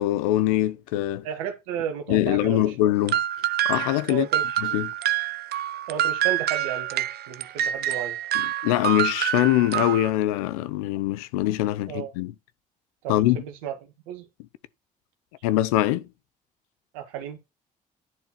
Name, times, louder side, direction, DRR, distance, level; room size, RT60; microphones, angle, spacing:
voice 1, 0.0-1.3 2.1-3.2 3.7-4.3 4.6-4.9 8.6-12.3 13.1-13.4 15.4-16.1, left 14 dB, 90° left, 0.7 m, -23 dB
voice 2, 1.2-2.7 4.1-4.6 5.9-8.2 11.9-12.1 13.0-14.3 16.9-17.4, right 9 dB, 90° right, 1.7 m, -33 dB
sound 1, 3.1-10.1, right 11 dB, 65° right, 0.7 m, -27 dB
10.5 x 4.6 x 5.8 m
hypercardioid pair, 50°, 18 cm